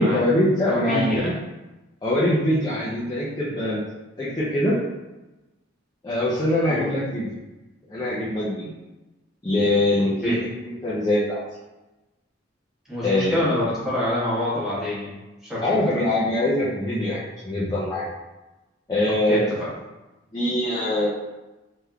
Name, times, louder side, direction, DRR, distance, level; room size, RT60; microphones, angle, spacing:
voice 1, 0.0-1.3 2.0-3.8 4.2-4.8 6.0-7.4 7.9-8.7 9.4-11.4 13.0-13.4 15.6-18.1 18.9-19.5 20.3-21.1, left 1 dB, 20° left, -9 dB, 0.5 m, -23 dB
voice 2, 0.7-1.3 6.7-6.8 10.2-10.4 12.9-15.1 15.4-16.0 19.3-19.4, left 1 dB, 5° right, -9 dB, 1.1 m, -26 dB
3.5 x 2.9 x 2.3 m, 1.1 s
head